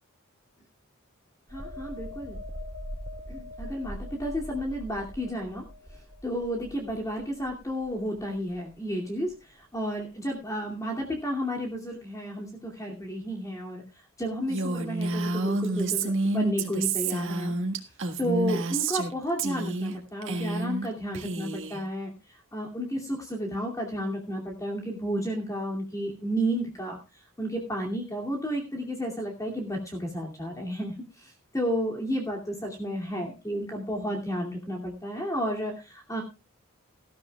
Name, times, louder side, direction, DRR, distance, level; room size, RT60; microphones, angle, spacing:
voice 1, 1.5-2.4 3.3-5.6 6.2-13.8 14.2-17.5 18.2-22.1 22.5-27.0 27.4-36.2, equal, 15° left, 0 dB, 2.5 m, -32 dB
sound 1, 1.5-8.9 9.3-9.5, equal, 35° right, 1.5 m, -42 dB
Female speech woman speaking, 14.5-19.1 19.4-20.0 20.2-20.9 21.1-21.8, right 3 dB, 65° right, 1.6 m, -29 dB
18.5 x 12.5 x 2.3 m, 0.27 s
head